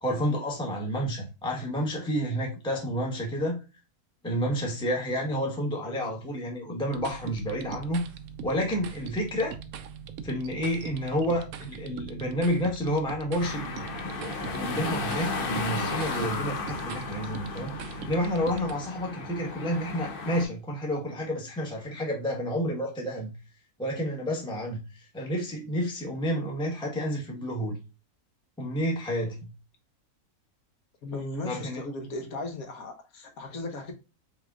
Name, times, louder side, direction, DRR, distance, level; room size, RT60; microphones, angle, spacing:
voice 1, 0.0-3.6 4.2-8.0 8.4-9.6 10.2-23.3 23.8-27.8 28.6-29.5 31.4-31.8, equal, 5° left, 0.9 m, -30 dB
voice 2, 5.8-6.1 31.0-33.9, left 2 dB, 65° left, 1.6 m, -37 dB
sound 1, 6.9-18.7, right 7 dB, 75° right, 1.0 m, -42 dB
sound 2, 13.4-20.4, left 3 dB, 50° left, 0.7 m, -34 dB
5.3 x 3.7 x 2.3 m
omnidirectional pair, 1.6 m